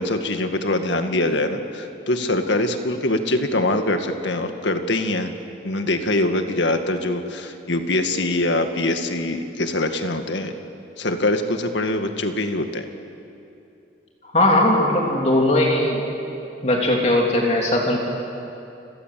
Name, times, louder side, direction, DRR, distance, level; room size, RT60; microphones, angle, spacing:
voice 1, 0.0-5.3 5.6-10.5 11.0-12.9, left 2 dB, 75° left, 6 dB, 1.9 m, -23 dB
voice 2, 14.3-16.0 16.6-18.0, left 1 dB, 35° left, -1 dB, 3.0 m, -19 dB
29.5 x 23.0 x 7.7 m, 2.8 s
head